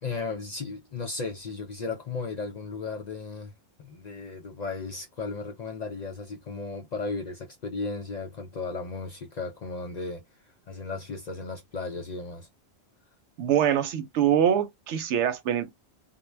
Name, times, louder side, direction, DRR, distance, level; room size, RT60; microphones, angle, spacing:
voice 1, 0.0-3.5 3.8-10.2 10.7-12.5, left 4 dB, 55° left, 0.4 m, -35 dB
voice 2, 13.4-15.7, right 9 dB, 90° right, 0.9 m, -24 dB
2.1 x 2.1 x 3.1 m
omnidirectional pair, 1.1 m